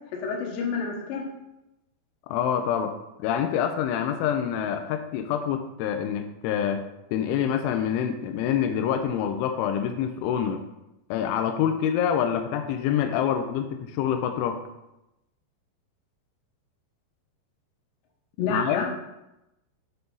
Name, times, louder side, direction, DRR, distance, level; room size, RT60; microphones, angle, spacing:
voice 1, 0.2-1.2 18.4-18.9, left 5 dB, 70° left, -1 dB, 3.3 m, -29 dB
voice 2, 2.3-2.9 3.2-6.8 7.1-10.6 11.1-14.6 18.5-18.9, left 8 dB, 90° left, 5 dB, 3.0 m, -26 dB
8.1 x 5.8 x 3.9 m, 0.92 s
omnidirectional pair, 5.4 m